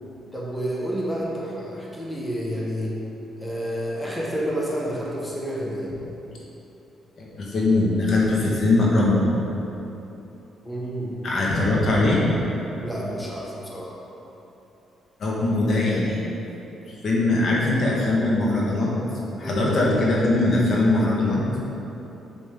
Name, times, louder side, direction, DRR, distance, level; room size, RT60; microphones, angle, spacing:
voice 1, 0.3-3.0 3.4-5.9 10.6-11.1 12.8-14.0 19.4-19.8, equal, 5° left, -4 dB, 1.4 m, -29 dB
voice 2, 7.4-9.3 11.2-12.3 15.2-16.2 17.0-18.9 19.4-21.4, left 2 dB, 55° left, -4 dB, 1.4 m, -21 dB
7.2 x 6.1 x 3.7 m, 3.0 s
cardioid pair, 90°, 0 cm